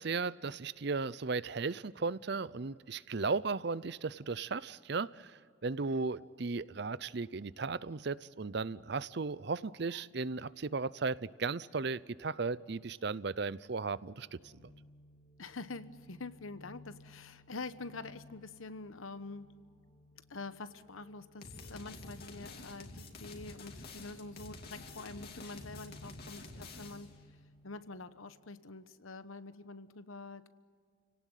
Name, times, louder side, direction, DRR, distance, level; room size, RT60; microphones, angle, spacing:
voice 1, 0.0-14.3, right 4 dB, 55° right, 19 dB, 0.6 m, -36 dB
sound 1, 14.0-28.7, left 2 dB, 30° left, 3.3 m, -60 dB
voice 2, 15.4-19.5 20.3-27.1 27.6-30.5, left 3 dB, 85° left, 12 dB, 1.1 m, -46 dB
sound 2, 21.4-27.2, left 2 dB, 50° left, 2.8 m, -49 dB
30.0 x 18.0 x 9.2 m, 2.1 s
head